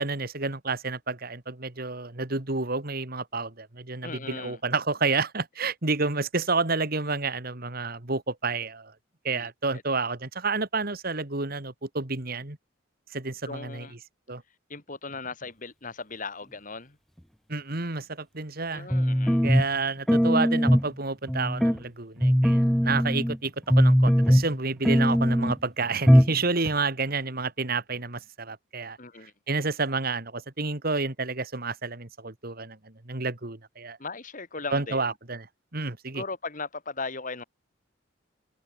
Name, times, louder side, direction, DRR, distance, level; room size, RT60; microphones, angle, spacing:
voice 1, 0.0-8.9 9.2-12.6 13.1-13.9 14.3-14.4 17.5-18.9 19.4-29.0 29.5-34.0 34.7-35.5 35.7-36.2, right 3 dB, 50° right, 2.2 m, -30 dB
voice 2, 4.0-4.6 9.3-9.8 13.4-13.9 14.7-17.0 18.7-19.4 29.0-29.3 34.0-35.1 36.1-37.4, left 4 dB, 40° left, 2.8 m, -38 dB
sound 1, 18.9-19.7 20.1-20.9 21.3-21.8 22.2-23.4 23.7-24.6 24.8-25.6 26.1-26.4 26.6-26.7, equal, ahead, 0.5 m, -20 dB
head